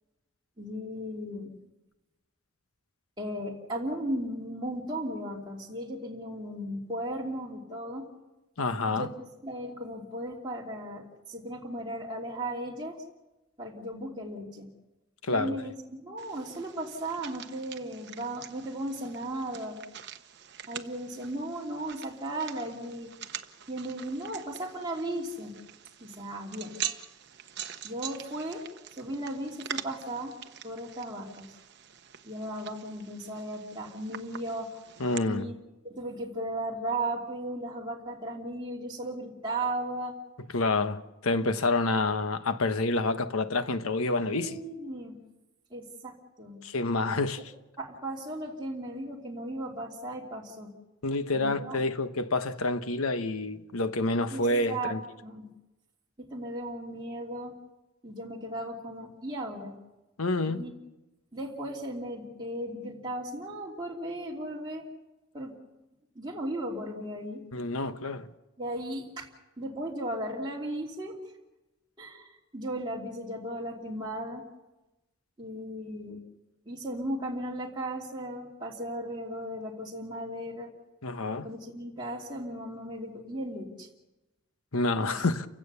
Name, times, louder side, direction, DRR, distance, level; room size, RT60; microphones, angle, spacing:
voice 1, 0.6-1.5 3.2-8.1 8.9-9.1 9.4-13.0 13.6-14.7 15.3-19.8 20.7-23.1 23.7-25.6 26.0-26.7 27.8-28.6 29.0-30.4 30.6-31.5 32.2-34.8 35.2-35.5 35.8-40.2 41.4-41.5 44.3-45.2 45.7-46.6 47.8-50.7 51.3-51.8 54.3-54.9 55.2-55.5 56.2-57.5 58.0-59.7 60.5-60.7 61.3-64.9 65.3-65.5 66.1-67.4 68.6-69.3 69.6-71.2 72.0-74.4 75.4-76.2 76.7-80.7 81.4-83.9 85.0-85.2, right 1 dB, 20° right, 2.8 m, -36 dB
voice 2, 8.6-9.1 15.2-15.6 35.0-35.5 40.5-44.6 46.6-47.4 51.0-55.0 60.2-60.6 67.5-68.3 81.0-81.5 84.7-85.5, left 2 dB, 85° left, 1.2 m, -28 dB
sound 1, 16.2-35.2, right 9 dB, 55° right, 1.1 m, -44 dB
29.5 x 16.5 x 7.0 m
head